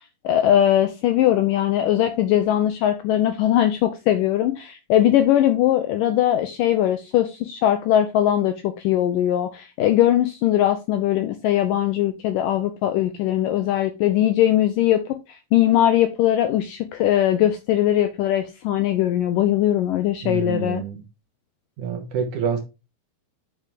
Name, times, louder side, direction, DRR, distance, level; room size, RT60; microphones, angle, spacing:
voice 1, 0.2-15.2 15.5-20.8, left 12 dB, 80° left, 2.0 m, -20 dB
voice 2, 20.2-21.0 21.8-22.6, right 7 dB, 65° right, 2.0 m, -27 dB
7.5 x 6.1 x 3.5 m
omnidirectional pair, 4.6 m